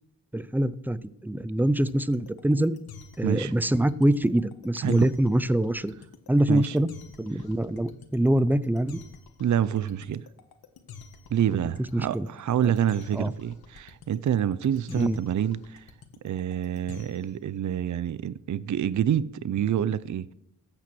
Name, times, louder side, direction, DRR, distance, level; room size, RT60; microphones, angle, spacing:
voice 1, 0.3-2.7 3.2-5.9 6.3-6.9 7.2-9.0 11.9-12.3 13.2-13.3 15.0-15.2, right 1 dB, 5° right, 0.5 m, -24 dB
sound 1, 1.8-17.4, left 6 dB, 85° left, 1.6 m, -48 dB
voice 2, 3.2-3.5 4.8-5.1 6.5-6.8 9.4-10.2 11.3-15.8 16.2-20.3, right 9 dB, 55° right, 0.6 m, -27 dB
13.5 x 8.9 x 6.1 m
wide cardioid pair, 105°, 36 cm